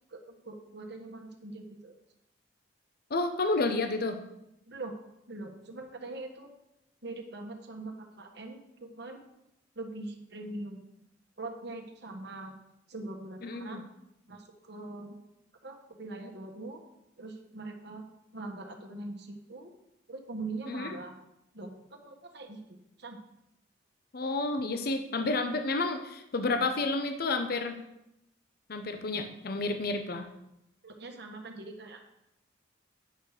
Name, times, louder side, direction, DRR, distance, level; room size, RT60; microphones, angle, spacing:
voice 1, 0.4-1.9 4.7-4.9 5.3-6.5 7.0-9.2 9.7-10.8 11.4-12.6 12.9-13.8 14.3-15.2 15.6-16.8 17.2-18.0 18.3-19.7 20.1-21.1 21.5-23.2 30.8-32.0, right 2 dB, 65° right, 3 dB, 1.5 m, -42 dB
voice 2, 3.1-4.2 13.4-13.8 20.7-20.9 24.1-27.8 28.7-30.3, left 3 dB, 55° left, 7 dB, 0.7 m, -30 dB
10.0 x 6.4 x 4.9 m, 0.84 s
head